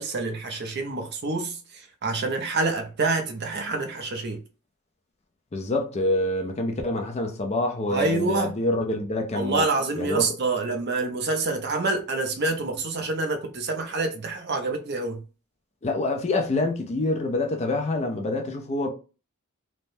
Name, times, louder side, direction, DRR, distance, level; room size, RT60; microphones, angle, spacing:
voice 1, 0.0-1.6 2.0-4.4 7.9-8.6 9.3-15.2, right 3 dB, 50° right, 0.6 m, -27 dB
voice 2, 5.5-9.7 10.0-10.3 15.8-18.9, left 2 dB, 30° left, 0.4 m, -26 dB
3.2 x 2.1 x 2.6 m
head